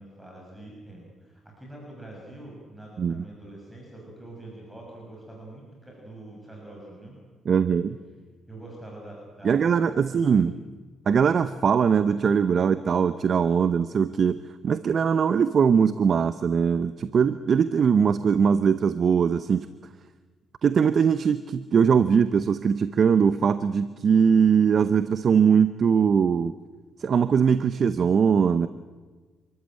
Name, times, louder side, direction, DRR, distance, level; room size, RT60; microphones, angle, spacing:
voice 1, 0.0-7.2 8.5-10.5, right 1 dB, 5° right, -2 dB, 6.3 m, -44 dB
voice 2, 7.5-8.0 9.4-10.5 11.1-19.7 20.6-26.5 27.0-28.7, right 6 dB, 50° right, 12 dB, 0.8 m, -21 dB
27.0 x 14.0 x 9.0 m, 1.4 s
cardioid pair, 90°, 0 cm